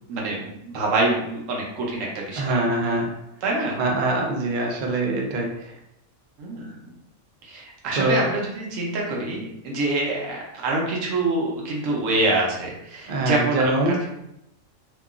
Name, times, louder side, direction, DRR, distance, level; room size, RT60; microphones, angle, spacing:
voice 1, 0.1-2.6 3.4-3.8 6.4-6.6 7.4-14.1, right 2 dB, 70° right, -2 dB, 1.0 m, -26 dB
voice 2, 2.3-3.1 3.8-5.7 7.9-8.3 13.1-14.0, right 2 dB, 85° right, 1 dB, 0.4 m, -23 dB
2.8 x 2.3 x 2.3 m, 0.82 s
omnidirectional pair, 1.5 m